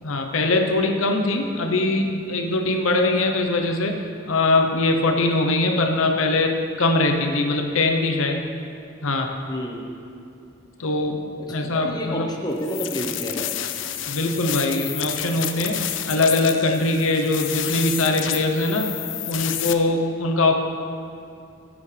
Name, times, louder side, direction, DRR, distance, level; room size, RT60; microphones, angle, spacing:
voice 1, 0.0-8.4 9.0-9.3 10.8-11.2 11.5-12.3 14.1-19.0 19.3-20.5, left 2 dB, 85° left, 3 dB, 0.8 m, -22 dB
voice 2, 9.5-9.9 11.4-13.5, equal, 20° left, -1 dB, 0.9 m, -30 dB
sound 1, 12.6-19.7, left 12 dB, 70° left, 0.5 m, -30 dB
16.0 x 7.1 x 3.3 m, 2.4 s
head